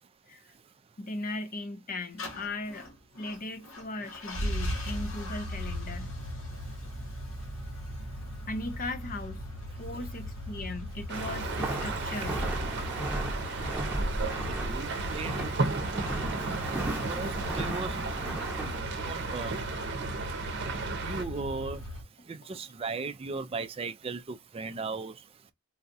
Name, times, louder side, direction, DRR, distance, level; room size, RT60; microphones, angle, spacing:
voice 1, 1.0-2.9 3.2-6.1 8.5-9.4 9.8-12.4, left 2 dB, 40° left, 0.7 m, -38 dB
sound 1, 2.2-22.0, equal, 65° left, 1.2 m, -38 dB
Walk footsteps, 11.1-18.8, right 1 dB, 10° right, 0.9 m, -35 dB
sound 2, 11.1-21.2, right 4 dB, 50° right, 0.7 m, -35 dB
voice 2, 14.5-15.5 17.1-18.0 19.1-19.6 21.0-21.8 22.3-25.1, right 4 dB, 25° right, 0.4 m, -36 dB
4.0 x 2.3 x 2.6 m
head